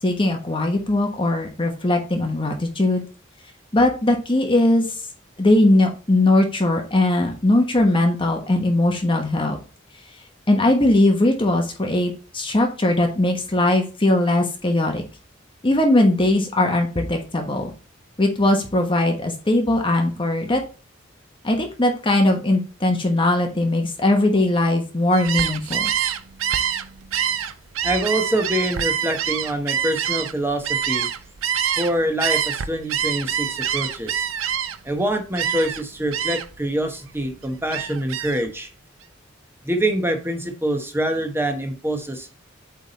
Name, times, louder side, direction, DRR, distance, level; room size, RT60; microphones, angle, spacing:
voice 1, 0.0-3.0 3.7-4.8 5.4-9.6 10.5-15.0 15.6-17.7 18.2-20.6 21.4-25.9, left 1 dB, 25° left, 3 dB, 1.2 m, -20 dB
Gull seagull, 25.1-31.9 32.2-34.9 35.4-35.8 36.1-36.6 37.0-38.4, right 9 dB, 90° right, 0.6 m, -25 dB
voice 2, 27.8-31.1 31.8-34.2 34.8-38.7 39.6-42.3, right 1 dB, 10° right, 5 dB, 1.1 m, -25 dB
8.1 x 3.6 x 4.1 m, 0.33 s
head